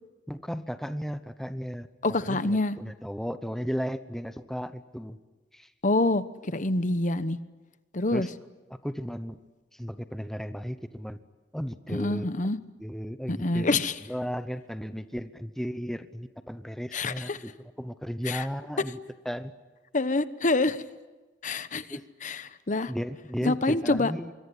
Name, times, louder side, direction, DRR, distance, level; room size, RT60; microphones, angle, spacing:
voice 1, 0.3-1.9 2.2-5.2 5.5-5.7 8.1-8.3 8.8-9.4 9.7-11.2 11.5-12.3 12.8-17.5 17.8-19.0 19.2-19.5 21.9-22.0 22.9-24.3, equal, ahead, 11 dB, 0.9 m, -35 dB
voice 2, 2.0-2.8 5.8-7.4 7.9-8.3 11.9-12.6 13.3-13.9 16.9-17.4 18.2-18.4 19.9-20.8 21.4-22.9 23.4-24.1, left 2 dB, 45° left, 13 dB, 1.1 m, -26 dB
25.5 x 22.5 x 10.0 m, 1.2 s
head